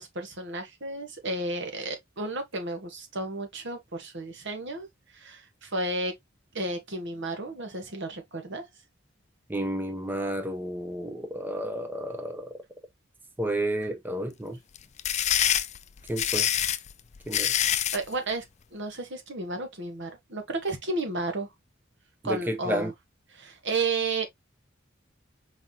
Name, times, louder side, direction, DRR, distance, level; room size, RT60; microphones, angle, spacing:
voice 1, 0.0-4.9 5.1-6.1 6.5-8.7 17.9-18.4 18.7-21.5 22.2-22.9 23.3-24.3, right 2 dB, 65° right, 1.4 m, -32 dB
voice 2, 9.5-12.5 13.4-14.6 16.1-16.5 17.3-17.5 22.2-22.9, right 1 dB, 10° right, 0.7 m, -31 dB
sound 1, 14.7-18.0, left 10 dB, 35° left, 0.4 m, -25 dB
4.7 x 4.0 x 2.8 m
head